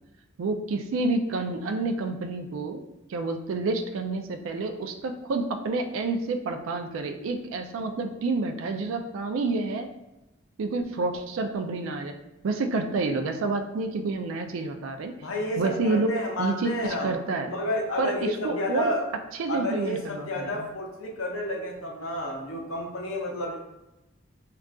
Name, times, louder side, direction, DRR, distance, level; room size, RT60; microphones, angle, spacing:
voice 1, 0.4-2.8 3.1-9.9 10.6-12.1 12.4-15.1 15.6-16.1 16.4-17.5 18.0-18.9 19.4-20.7, right 3 dB, 80° right, 6 dB, 0.3 m, -29 dB
voice 2, 15.2-17.1 17.5-19.0 19.5-23.6, left 1 dB, 85° left, 0 dB, 0.6 m, -30 dB
3.7 x 2.3 x 2.3 m, 0.97 s
head